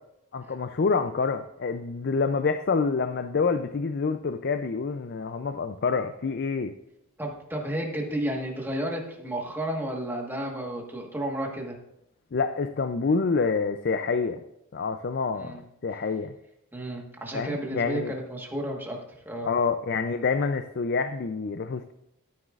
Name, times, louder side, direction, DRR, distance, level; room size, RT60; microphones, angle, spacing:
voice 1, 0.3-6.7 12.3-14.4 14.7-15.6 15.8-16.3 17.3-18.1 19.5-21.9, left 4 dB, 45° left, 9 dB, 0.4 m, -27 dB
voice 2, 7.2-11.8 15.3-15.6 16.7-19.0 19.2-19.5, right 1 dB, 10° right, 0 dB, 1.4 m, -32 dB
13.0 x 9.4 x 2.4 m, 0.83 s
head